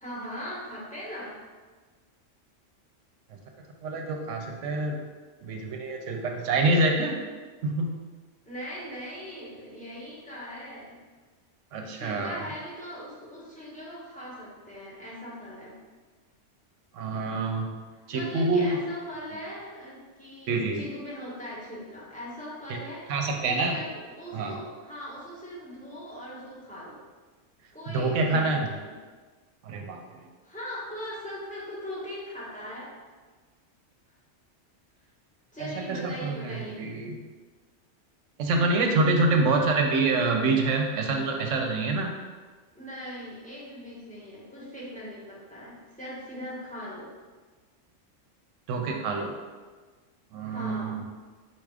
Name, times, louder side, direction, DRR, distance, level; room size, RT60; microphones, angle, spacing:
voice 1, 0.0-1.3 8.4-11.0 11.9-15.8 18.1-27.0 27.7-28.9 30.4-32.9 35.5-36.8 42.7-47.1 50.5-51.0, equal, 5° left, -7 dB, 1.1 m, -40 dB
voice 2, 3.8-5.0 5.4-7.2 7.6-7.9 11.7-12.4 17.0-17.7 18.1-18.8 20.5-20.8 23.1-23.7 24.3-24.5 27.9-28.7 29.7-30.0 36.0-37.2 38.4-42.1 48.7-49.3 50.3-51.0, right 3 dB, 75° right, 2 dB, 0.9 m, -26 dB
4.4 x 2.4 x 4.8 m, 1.4 s
omnidirectional pair, 1.3 m